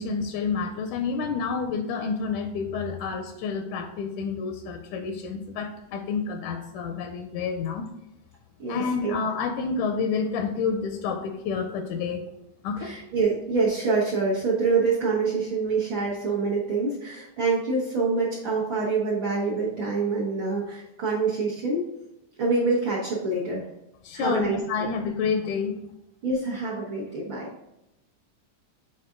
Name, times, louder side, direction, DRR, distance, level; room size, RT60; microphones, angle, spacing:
voice 1, 0.0-7.9 8.7-12.3 12.6-12.9 24.0-25.8, left 5 dB, 85° left, 6 dB, 2.0 m, -29 dB
voice 2, 8.6-9.1 12.8-21.9 22.4-23.7 24.1-24.9 26.2-27.5, right 4 dB, 60° right, -6 dB, 1.3 m, -26 dB
6.7 x 4.1 x 3.7 m, 0.90 s
omnidirectional pair, 3.5 m